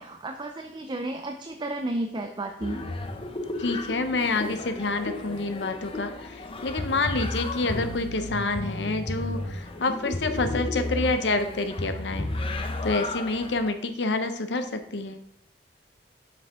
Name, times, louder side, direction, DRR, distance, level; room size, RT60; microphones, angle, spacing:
voice 1, 0.0-2.8, right 2 dB, 25° right, 5 dB, 0.5 m, -32 dB
sound 1, 2.6-13.7, left 2 dB, 30° left, 0.6 m, -33 dB
voice 2, 3.6-12.3 12.8-15.2, left 3 dB, 75° left, 8 dB, 0.8 m, -28 dB
7.6 x 5.8 x 3.7 m, 0.72 s
head